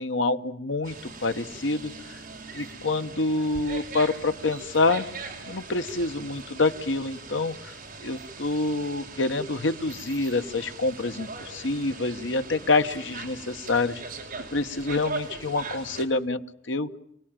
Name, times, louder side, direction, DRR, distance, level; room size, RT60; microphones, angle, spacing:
voice 1, 0.0-1.9 2.5-5.1 5.5-7.7 8.0-14.0 14.5-16.4 16.7-16.9, left 3 dB, 70° left, 9 dB, 1.2 m, -27 dB
sound 1, 0.8-16.1, right 3 dB, 45° right, 5.5 m, -40 dB
28.5 x 18.5 x 9.1 m, 0.78 s
head